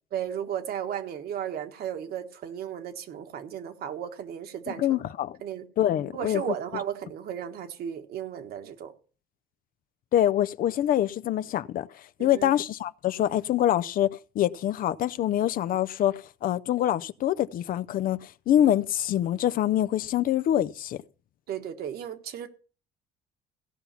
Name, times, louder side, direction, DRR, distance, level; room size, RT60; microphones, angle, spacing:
voice 1, 0.1-4.9 5.4-5.6 6.1-8.9 12.2-12.5 21.5-22.5, right 9 dB, 65° right, 1.5 m, -34 dB
voice 2, 4.7-5.4 5.8-6.4 10.1-21.0, left 11 dB, 55° left, 0.5 m, -25 dB
16.5 x 5.7 x 5.7 m
cardioid pair, 110°, 17 cm